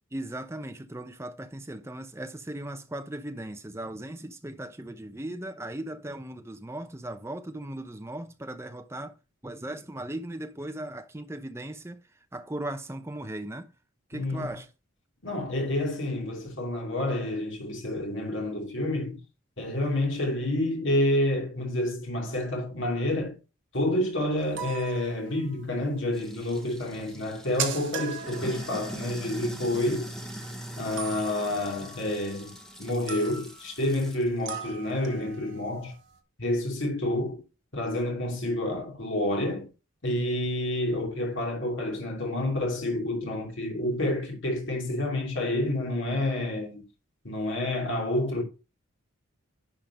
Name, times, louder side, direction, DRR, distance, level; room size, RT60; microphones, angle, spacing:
voice 1, 0.1-9.2 9.4-12.0 12.3-13.7 14.1-14.7, right 1 dB, 15° right, 0.7 m, -37 dB
voice 2, 14.1-14.5 15.2-19.2 19.6-23.4 23.7-30.1 30.8-32.5 32.8-35.9 36.4-37.4 37.7-39.7 40.0-46.9 47.2-48.4, left 1 dB, 60° left, 2.7 m, -29 dB
sound 1, 24.4-25.9 26.1-26.2 26.5-26.6 26.8-26.9 27.1-30.4 31.0-32.7 33.1-33.8 34.5-36.2, right 7 dB, 60° right, 1.3 m, -40 dB
Sink (filling or washing), 26.1-34.3, right 1 dB, 5° left, 1.2 m, -41 dB
10.5 x 3.8 x 5.1 m
head